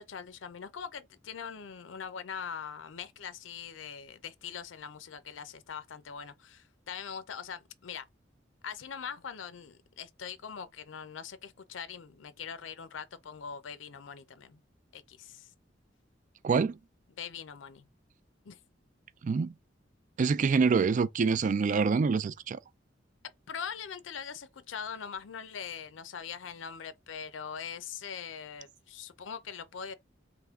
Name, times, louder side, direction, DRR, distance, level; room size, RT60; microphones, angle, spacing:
voice 1, 0.0-8.1 8.6-14.6 14.9-15.5 17.2-17.9 18.5-18.6 23.5-29.9, left 7 dB, 85° left, 0.5 m, -42 dB
voice 2, 16.4-16.8 19.2-19.5 20.2-22.6, right 5 dB, 45° right, 0.3 m, -26 dB
3.5 x 3.0 x 3.5 m
head